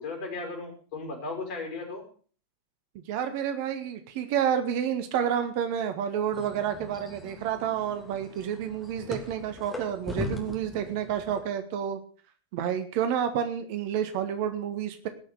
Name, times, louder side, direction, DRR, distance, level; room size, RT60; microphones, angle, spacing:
voice 1, 0.0-2.0, left 3 dB, 45° left, 3 dB, 5.6 m, -36 dB
voice 2, 3.1-12.0 12.5-15.1, right 9 dB, 45° right, 9 dB, 1.6 m, -29 dB
sound 1, 6.3-11.4, left 2 dB, 15° left, 3.1 m, -40 dB
18.5 x 6.5 x 6.7 m, 0.43 s
figure-of-eight pair, 90°, 0 cm